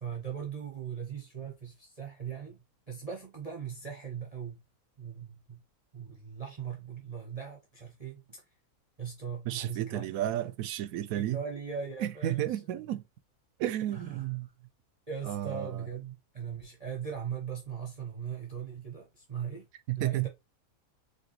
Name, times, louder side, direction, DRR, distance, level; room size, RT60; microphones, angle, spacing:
voice 1, 0.0-4.6 5.0-5.6 5.9-8.5 9.0-10.1 11.1-12.6 13.9-14.3 15.1-19.7 20.0-20.3, right 7 dB, 30° right, 0.8 m, -39 dB
voice 2, 9.5-11.4 12.0-13.0 13.6-14.5 15.3-15.7 19.9-20.3, right 13 dB, 75° right, 1.0 m, -32 dB
5.1 x 3.2 x 3.0 m
omnidirectional pair, 1.6 m